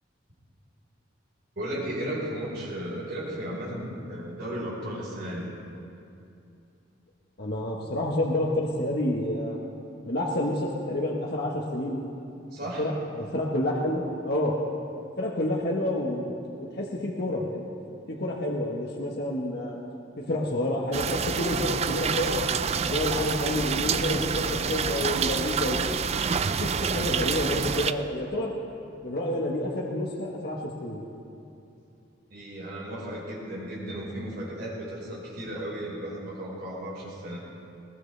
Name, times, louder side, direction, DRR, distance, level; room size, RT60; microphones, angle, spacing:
voice 1, 1.5-5.5 12.5-12.9 32.3-37.4, right 1 dB, 55° right, -5 dB, 4.8 m, -35 dB
voice 2, 7.4-9.7 10.0-12.0 12.8-14.6 15.2-17.6 18.1-19.8 20.2-22.4 22.8-25.8 26.5-28.5 29.0-31.0, left 1 dB, 55° left, -3 dB, 1.3 m, -29 dB
sound 1, 20.9-27.9, right 6 dB, 35° right, 0.4 m, -27 dB
21.0 x 19.0 x 3.4 m, 2.7 s
head